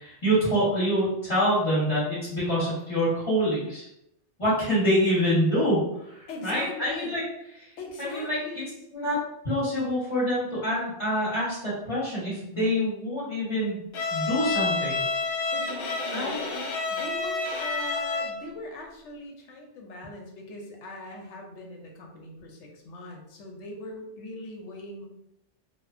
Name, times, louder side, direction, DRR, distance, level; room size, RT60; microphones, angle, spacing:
voice 1, 0.0-3.9 4.4-7.2 7.5-8.4 8.9-9.2 9.4-13.8 14.1-15.0 16.1-16.3, equal, 30° left, -9 dB, 0.9 m, -26 dB
voice 2, 6.3-7.1 7.8-8.8 15.5-25.0, left 2 dB, 85° left, 1 dB, 0.9 m, -41 dB
Bowed string instrument, 13.9-18.5, left 3 dB, 65° left, 0.7 m, -29 dB
2.8 x 2.1 x 2.4 m, 0.82 s
omnidirectional pair, 1.2 m